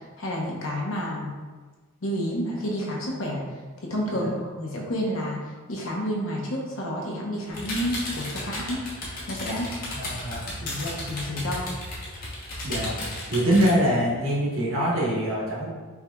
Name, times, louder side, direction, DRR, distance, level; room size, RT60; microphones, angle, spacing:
voice 1, 0.2-1.3 2.0-3.4 3.8-8.8 9.3-9.9 10.6-11.7, equal, 65° left, -2 dB, 0.8 m, -30 dB
sound 1, 7.5-13.7, left 1 dB, 40° left, 1.0 m, -34 dB
voice 2, 9.9-10.6 12.6-13.0 13.3-15.7, equal, 65° right, -5 dB, 1.2 m, -24 dB
5.4 x 3.1 x 2.3 m, 1.4 s
head